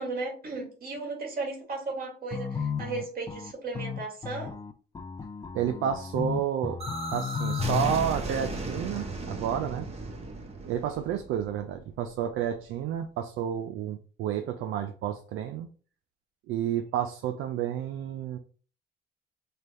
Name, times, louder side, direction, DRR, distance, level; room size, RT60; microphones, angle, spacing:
voice 1, 0.0-4.5, right 3 dB, 50° right, -1 dB, 1.7 m, -35 dB
sound 1, 2.3-8.1, left 6 dB, 20° left, 0.4 m, -33 dB
voice 2, 5.5-6.8 7.1-9.9 10.6-15.7 16.5-18.4, right 9 dB, 85° right, 6 dB, 0.4 m, -30 dB
sound 2, 6.8-12.5, right 2 dB, 30° right, 1.0 m, -36 dB
3.3 x 2.2 x 4.2 m, 0.39 s
cardioid pair, 90°, 20 cm